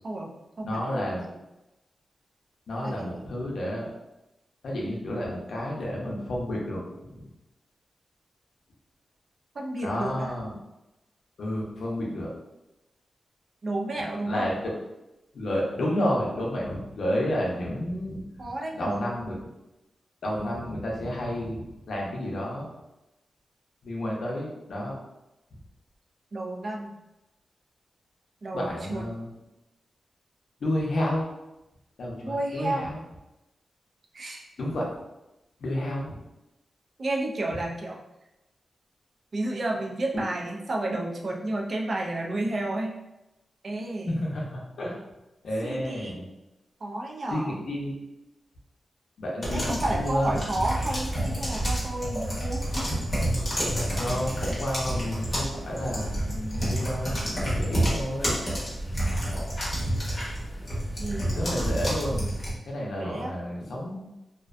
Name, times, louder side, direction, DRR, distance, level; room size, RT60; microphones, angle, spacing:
voice 1, 0.0-1.0 2.8-3.2 9.6-10.3 13.6-14.6 18.4-19.1 26.3-26.9 28.4-29.0 32.2-32.9 34.1-34.5 37.0-38.0 39.3-43.0 43.6-44.1 45.6-46.2 46.8-47.6 49.5-52.9 61.0-61.6 63.0-63.4, right 2 dB, 40° right, 0 dB, 0.3 m, -31 dB
voice 2, 0.6-1.3 2.7-3.9 4.6-7.2 9.8-10.6 11.4-12.3 14.0-14.7 15.3-18.2 18.8-19.3 20.2-21.6 21.9-22.7 23.8-24.9 28.5-29.3 30.6-31.3 32.0-33.0 34.6-34.9 35.6-36.2 40.1-40.2 44.1-45.0 45.4-46.3 47.3-47.9 49.2-50.4 53.9-58.4 61.3-62.3 62.7-64.0, left 1 dB, 70° left, -3 dB, 0.6 m, -30 dB
sound 1, 49.4-62.5, right 1 dB, 25° left, 0.7 m, -29 dB
2.4 x 2.1 x 2.4 m, 0.96 s
wide cardioid pair, 180°, 0 cm